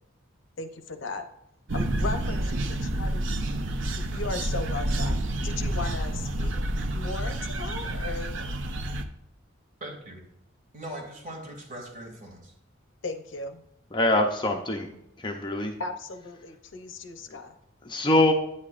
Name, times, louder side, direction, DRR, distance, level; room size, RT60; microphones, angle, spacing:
voice 1, 0.6-1.2 1.7-3.2 4.1-6.5 6.9-8.4 13.0-13.6 15.8-17.6, left 3 dB, 65° left, 8 dB, 0.7 m, -36 dB
sound 1, 1.7-9.0, right 1 dB, 65° right, 0.7 m, -29 dB
voice 2, 9.8-10.3 10.7-12.5, right 1 dB, 40° right, 0 dB, 2.3 m, -40 dB
voice 3, 13.9-14.9 15.2-15.7 17.9-18.3, left 1 dB, 25° left, 3 dB, 0.6 m, -23 dB
9.5 x 8.6 x 2.5 m, 0.81 s
head